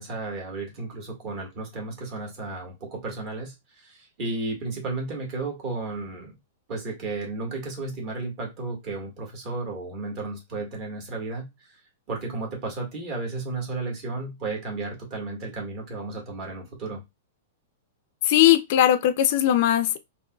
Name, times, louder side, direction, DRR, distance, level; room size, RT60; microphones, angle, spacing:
voice 1, 0.0-6.3 6.7-11.7 12.1-17.0, right 3 dB, 35° right, 1.7 m, -33 dB
voice 2, 18.3-20.0, left 12 dB, 50° left, 0.3 m, -19 dB
3.8 x 2.9 x 2.3 m
supercardioid pair, 155°, 0 cm